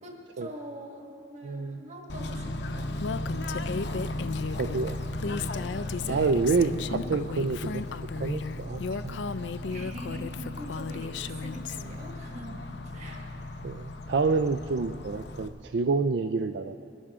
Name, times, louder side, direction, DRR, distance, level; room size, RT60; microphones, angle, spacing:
voice 1, 0.0-3.0 6.0-6.4 9.7-13.3, right 1 dB, 40° right, 1 dB, 1.7 m, -44 dB
voice 2, 1.4-1.8 4.5-5.0 6.1-7.8 8.2-9.2 13.6-16.8, right 4 dB, 70° right, 8 dB, 0.4 m, -28 dB
Bird / Train, 2.1-15.5, left 1 dB, 70° left, 0.8 m, -36 dB
Female speech woman speaking, 3.0-11.8, left 5 dB, 85° left, 0.4 m, -35 dB
22.0 x 11.5 x 3.6 m, 2.5 s
head